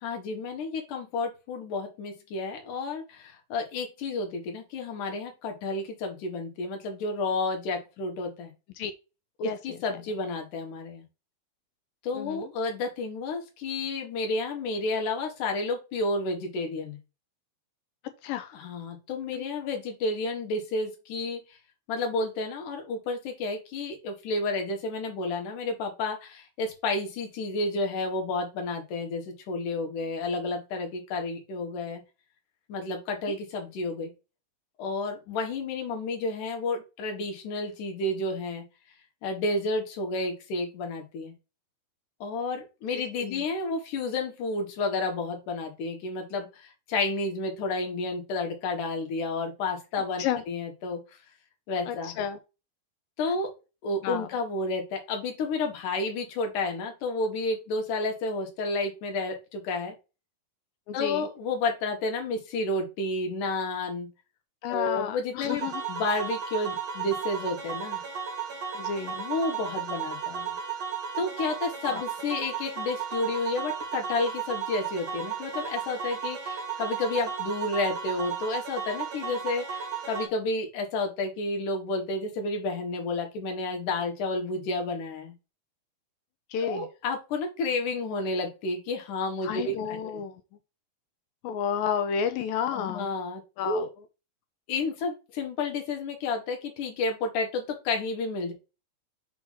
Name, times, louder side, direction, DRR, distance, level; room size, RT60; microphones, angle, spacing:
voice 1, 0.0-8.5 9.4-11.0 12.0-17.0 18.5-21.4 21.9-32.0 32.7-34.1 34.8-38.6 39.2-41.3 42.2-51.0 51.7-52.1 53.2-53.5 53.8-60.0 60.9-64.1 64.7-65.6 65.9-68.0 69.1-70.6 71.2-85.3 86.6-90.2 92.7-93.9 94.7-98.5, left 3 dB, 65° left, 2.8 m, -31 dB
voice 2, 9.4-9.8 12.1-12.5 18.2-18.6 19.3-19.4 33.3-33.4 42.9-43.4 50.2-50.4 51.9-52.4 54.0-54.3 60.9-61.3 64.6-65.8 68.7-69.2 71.9-72.0 86.5-86.9 89.4-90.4 91.4-93.1 93.6-93.9, left 7 dB, 80° left, 2.2 m, -31 dB
sound 1, 65.5-80.3, right 7 dB, 55° right, 2.2 m, -34 dB
6.2 x 2.9 x 5.5 m
omnidirectional pair, 4.3 m